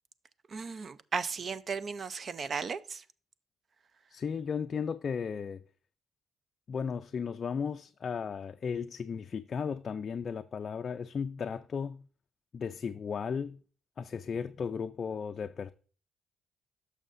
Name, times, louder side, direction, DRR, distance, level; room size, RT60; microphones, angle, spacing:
voice 1, 0.5-3.0, right 5 dB, 45° right, 0.5 m, -35 dB
voice 2, 4.1-5.6 6.7-12.0 12.5-13.6 14.0-15.7, left 6 dB, 45° left, 0.3 m, -35 dB
11.0 x 6.4 x 2.5 m
cardioid pair, 90°, 0 cm